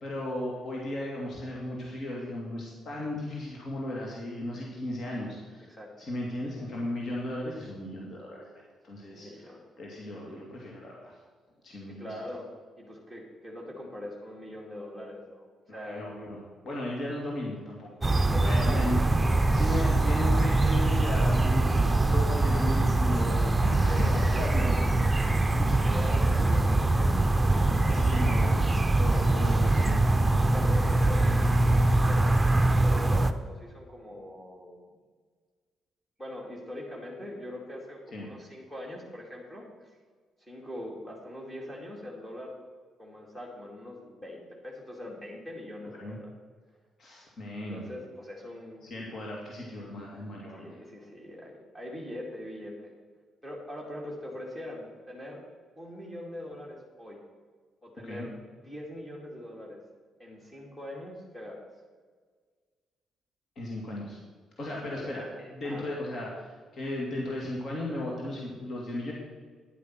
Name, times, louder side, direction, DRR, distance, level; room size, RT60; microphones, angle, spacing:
voice 1, 0.0-5.7 6.0-11.2 11.6-12.1 15.7-16.4 16.6-17.9 18.1-19.0 19.5-24.0 24.4-24.7 25.5-25.7 26.0-26.2 27.9-30.0 38.1-38.3 46.0-46.2 47.0-47.8 48.8-50.8 58.0-58.3 63.6-64.2 64.6-65.2 65.5-69.1, left 1 dB, 55° left, -3 dB, 2.3 m, -36 dB
voice 2, 9.0-9.6 11.9-12.5 12.8-16.0 18.3-18.9 23.9-24.9 25.5-28.0 29.1-29.2 30.4-34.8 36.2-39.9 40.4-42.5 43.0-46.3 47.7-48.9 50.5-52.9 53.4-55.4 55.8-57.2 57.8-58.3 58.6-59.8 60.2-61.6 64.6-64.7 65.0-65.2 65.6-65.8, left 1 dB, 15° left, -3 dB, 2.5 m, -42 dB
sound 1, 18.0-33.3, right 2 dB, 15° right, 0.7 m, -23 dB
10.5 x 8.3 x 5.9 m, 1.5 s
cardioid pair, 90°, 0 cm